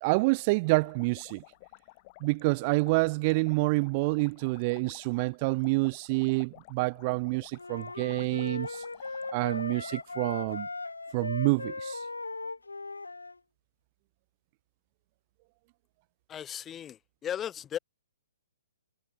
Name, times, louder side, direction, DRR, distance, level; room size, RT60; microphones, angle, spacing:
voice 1, 0.0-1.4 2.2-8.8 9.3-10.7 11.1-12.1, right 27 dB, 35° right, 0.7 m, -28 dB
sound 1, 0.6-10.6, left 24 dB, 35° left, 2.6 m, -54 dB
sound 2, 7.6-13.4, left 3 dB, 80° left, 0.5 m, -38 dB
voice 2, 16.3-17.8, left 9 dB, 15° left, 1.4 m, -36 dB
figure-of-eight pair, 125°, 0 cm